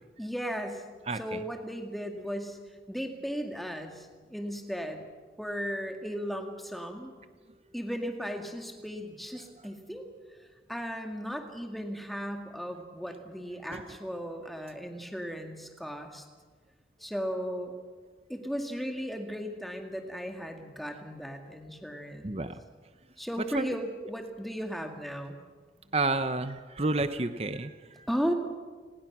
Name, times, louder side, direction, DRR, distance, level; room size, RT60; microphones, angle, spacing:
voice 1, 0.2-0.8 1.2-2.6 2.9-5.1 5.4-7.1 7.7-10.0 10.7-16.2 17.0-17.7 18.3-22.5 23.2-25.4 28.1-28.3, equal, ahead, 3 dB, 2.1 m, -36 dB
voice 2, 1.1-1.4 13.7-13.8 22.2-22.6 23.5-23.7 25.9-28.1, right 2 dB, 35° right, 10 dB, 0.9 m, -30 dB
29.0 x 20.0 x 6.1 m, 1.5 s
head